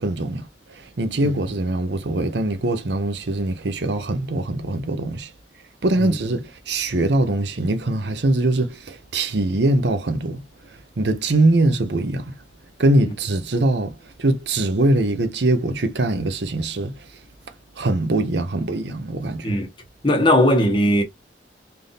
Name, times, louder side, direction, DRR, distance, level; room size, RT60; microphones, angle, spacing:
voice 1, 0.0-5.3 5.8-12.4 12.8-17.2 17.8-19.5, right 2 dB, 70° right, 0.7 m, -22 dB
voice 2, 20.0-21.0, equal, 25° left, 1.1 m, -18 dB
3.4 x 2.7 x 4.0 m
head